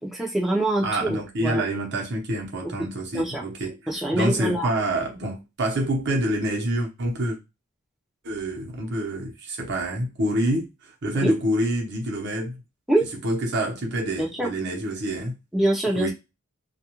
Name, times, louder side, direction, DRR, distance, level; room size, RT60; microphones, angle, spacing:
voice 1, 0.0-1.6 3.1-3.4 3.9-4.7 11.2-11.3 12.9-13.0 14.2-14.5 15.5-16.1, right 1 dB, ahead, 0.6 m, -24 dB
voice 2, 0.8-3.8 4.1-7.4 8.2-12.6 13.2-15.3 15.9-16.1, right 1 dB, 50° right, 0.9 m, -27 dB
2.3 x 2.3 x 2.9 m
head